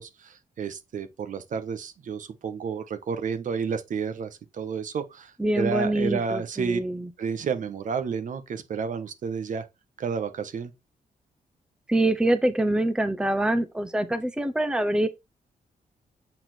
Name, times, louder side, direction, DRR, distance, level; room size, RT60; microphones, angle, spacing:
voice 1, 0.0-6.8 7.2-9.6 10.0-10.7, right 6 dB, 65° right, 1.2 m, -31 dB
voice 2, 5.4-7.1 11.9-15.1, right 1 dB, 5° right, 0.6 m, -25 dB
8.6 x 4.3 x 4.3 m
wide cardioid pair, 145°, 15 cm